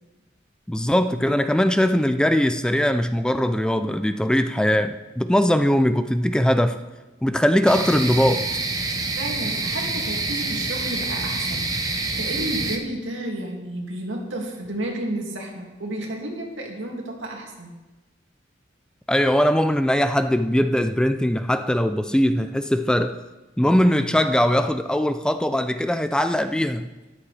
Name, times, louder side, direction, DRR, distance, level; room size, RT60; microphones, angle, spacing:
voice 1, 0.7-6.8 7.2-8.5 19.1-23.2 23.6-26.9, equal, 5° left, 0.3 m, -20 dB
sound 1, 7.7-12.8, right 3 dB, 20° right, 0.8 m, -27 dB
voice 2, 8.9-17.7, right 1 dB, 90° right, 2.3 m, -32 dB
13.0 x 11.5 x 3.3 m
head